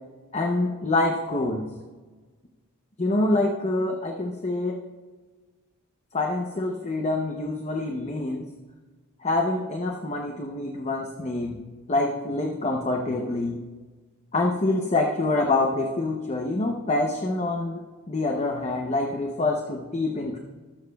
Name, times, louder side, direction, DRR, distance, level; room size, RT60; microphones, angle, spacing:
voice 1, 0.3-1.7 3.0-4.8 6.1-8.5 9.2-11.6 11.9-13.6 14.3-17.8 18.1-20.4, left 2 dB, 30° left, 2 dB, 0.7 m, -26 dB
19.0 x 7.2 x 2.3 m, 1.4 s
head